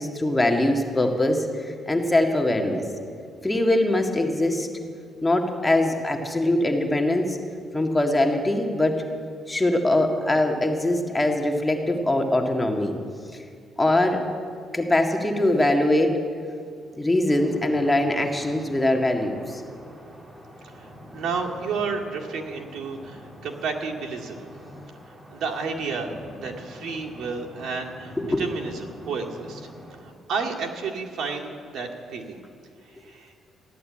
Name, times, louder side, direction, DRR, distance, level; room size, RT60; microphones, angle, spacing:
voice 1, 0.0-2.8 3.4-4.7 5.2-7.4 7.7-9.0 9.5-12.9 13.8-14.2 14.7-16.2 17.0-19.6 28.2-28.4, left 1 dB, 15° left, 3 dB, 1.8 m, -22 dB
sound 1, 17.3-30.0, equal, 25° right, 3.0 m, -45 dB
voice 2, 20.7-24.5 25.3-26.1 26.4-29.7 30.0-32.4 32.9-33.3, right 4 dB, 70° right, 1 dB, 2.1 m, -31 dB
14.5 x 11.0 x 8.6 m, 2.2 s
cardioid pair, 90°, 0 cm